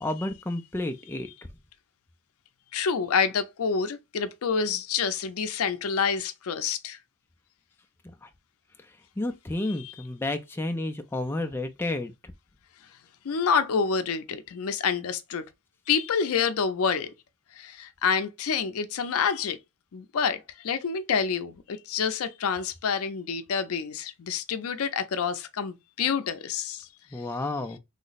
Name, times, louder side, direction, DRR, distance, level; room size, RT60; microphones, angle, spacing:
voice 1, 0.0-1.3 8.2-8.3 9.2-12.3 27.1-27.8, left 2 dB, 10° left, 0.3 m, -31 dB
voice 2, 2.7-7.0 9.6-9.9 13.2-15.4 15.9-17.1 17.5-19.6 19.9-27.3, left 6 dB, 70° left, 0.5 m, -28 dB
3.2 x 2.0 x 3.9 m
head